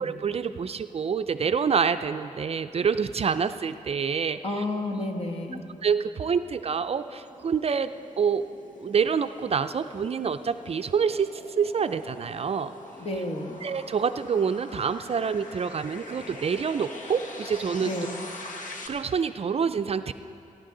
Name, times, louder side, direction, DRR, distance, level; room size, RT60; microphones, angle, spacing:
voice 1, 0.0-4.6 5.8-8.5 8.8-12.7 13.6-17.9 18.8-20.1, right 6 dB, 45° right, 10 dB, 0.4 m, -27 dB
voice 2, 4.4-5.6 13.0-13.6 17.8-18.1, left 2 dB, 45° left, 3 dB, 1.6 m, -30 dB
sound 1, 5.7-18.9, left 2 dB, 70° left, 1.5 m, -44 dB
28.0 x 11.0 x 3.8 m, 2.7 s
cardioid pair, 85°, 14 cm